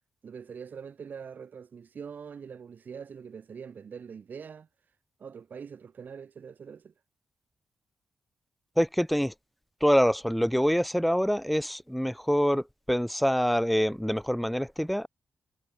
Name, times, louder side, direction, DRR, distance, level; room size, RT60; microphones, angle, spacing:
voice 1, 0.2-4.7 5.2-6.9, right 6 dB, 60° right, 5.9 m, -43 dB
voice 2, 8.8-9.3 9.8-15.1, equal, ahead, 0.8 m, -25 dB
cardioid pair, 70°, 3 cm